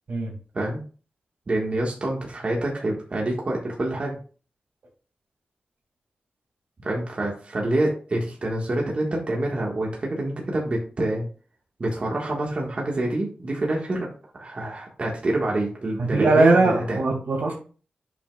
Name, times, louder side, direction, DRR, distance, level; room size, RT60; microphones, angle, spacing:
voice 1, 1.5-4.2 6.8-11.2 11.8-14.1 14.4-17.0, right 1 dB, 45° right, -2 dB, 1.7 m, -26 dB
voice 2, 16.1-17.5, right 2 dB, 75° right, 1 dB, 2.5 m, -20 dB
8.4 x 5.8 x 2.4 m, 0.39 s
wide cardioid pair, 105°, 3 cm